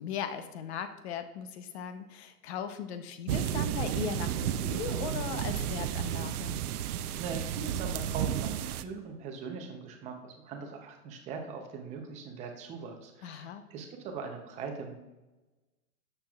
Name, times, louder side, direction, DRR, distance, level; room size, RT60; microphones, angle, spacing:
voice 1, 0.0-6.6 13.2-13.6, left 8 dB, 45° left, 9 dB, 0.8 m, -38 dB
sound 1, 3.3-8.8, right 10 dB, 75° right, 0.6 m, -32 dB
voice 2, 7.2-14.9, right 5 dB, 15° right, 3 dB, 0.7 m, -41 dB
12.0 x 6.8 x 2.4 m, 1.1 s
hypercardioid pair, 150°, 46 cm